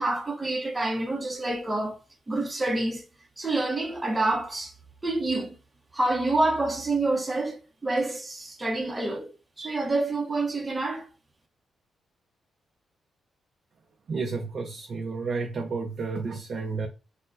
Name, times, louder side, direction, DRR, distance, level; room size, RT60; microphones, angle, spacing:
voice 1, 0.0-2.0 2.3-3.0 3.4-4.7 5.0-5.6 5.9-9.3 9.6-11.1, right 2 dB, 20° right, 0.7 m, -27 dB
voice 2, 14.1-16.9, right 4 dB, 55° right, 0.5 m, -31 dB
4.4 x 2.1 x 2.5 m
cardioid pair, 95°, 0 cm